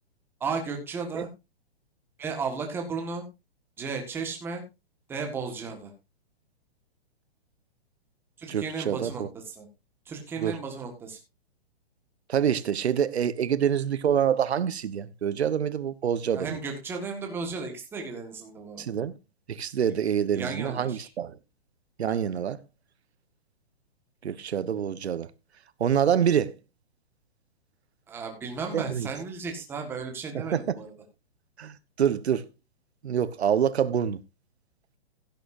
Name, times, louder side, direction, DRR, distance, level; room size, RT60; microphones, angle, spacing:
voice 1, 0.4-1.3 2.2-3.2 3.8-4.6 5.1-5.9 8.4-9.7 10.1-11.2 16.3-18.8 20.3-21.1 28.1-30.9, right 5 dB, 5° right, 1.6 m, -34 dB
voice 2, 8.5-9.3 10.4-10.6 12.3-16.6 18.8-19.1 19.5-21.3 22.0-22.6 24.2-25.3 25.8-26.5 28.7-29.1 30.3-30.8 31.6-31.7 32.0-32.5 33.0-34.2, right 8 dB, 90° right, 1.2 m, -26 dB
16.5 x 9.2 x 2.6 m
hypercardioid pair, 170°, 31 cm